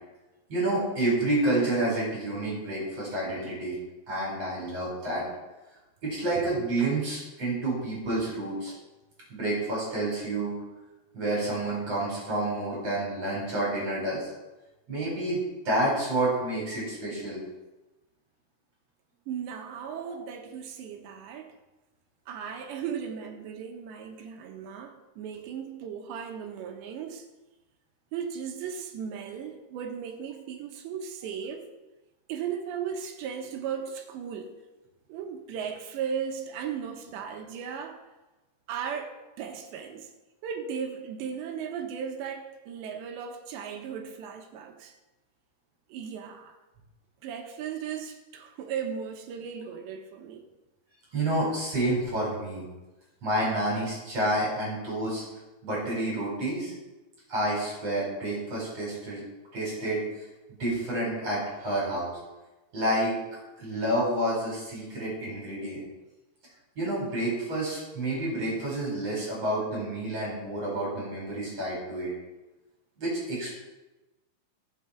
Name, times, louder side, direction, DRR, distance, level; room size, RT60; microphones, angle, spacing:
voice 1, 0.5-3.8 4.1-5.2 6.0-8.7 9.3-10.5 11.1-14.3 14.9-17.4 51.1-52.7 53.2-55.2 55.6-56.7 57.3-59.2 59.5-60.2 60.6-62.2 62.7-65.8 66.8-72.1 73.0-73.6, right 1 dB, 35° right, -4 dB, 5.6 m, -29 dB
voice 2, 19.3-21.6 22.3-27.3 28.1-31.7 32.3-34.6 35.1-38.0 38.7-40.1 40.4-44.9 45.9-46.6 47.2-50.5, right 7 dB, 85° right, 4 dB, 3.4 m, -36 dB
19.0 x 7.9 x 4.5 m, 1.1 s
omnidirectional pair, 5.0 m